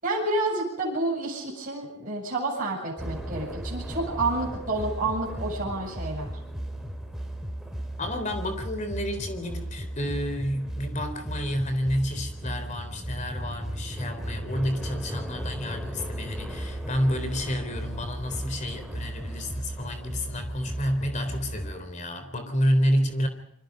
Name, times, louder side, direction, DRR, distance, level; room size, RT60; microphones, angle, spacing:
voice 1, 0.0-6.4, right 2 dB, 35° right, -4 dB, 7.8 m, -29 dB
sound 1, 3.0-21.8, right 1 dB, ahead, 3.1 m, -35 dB
voice 2, 8.0-23.3, equal, 30° left, 8 dB, 3.8 m, -29 dB
27.5 x 25.0 x 5.3 m, 0.72 s
head